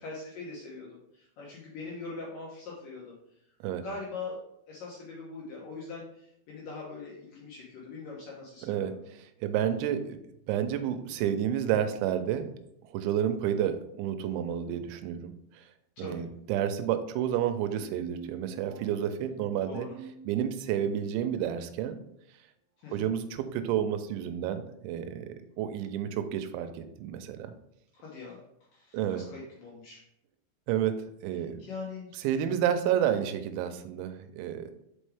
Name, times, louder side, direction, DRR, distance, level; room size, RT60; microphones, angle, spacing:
voice 1, 0.0-3.2 3.8-8.9 16.0-16.2 19.6-20.0 22.8-23.1 27.9-28.4 28.7-30.0 31.6-32.2, left 3 dB, 70° left, -4 dB, 2.1 m, -42 dB
voice 2, 8.6-10.2 10.5-12.5 12.9-15.6 16.0-19.9 20.3-22.0 22.9-25.3 25.6-27.5 28.9-29.3 30.7-31.6 32.1-34.7, right 9 dB, 90° right, 9 dB, 3.0 m, -30 dB
sound 1, 17.6-21.0, right 8 dB, 75° right, 2.5 m, -47 dB
5.7 x 5.4 x 3.3 m, 0.77 s
omnidirectional pair, 5.2 m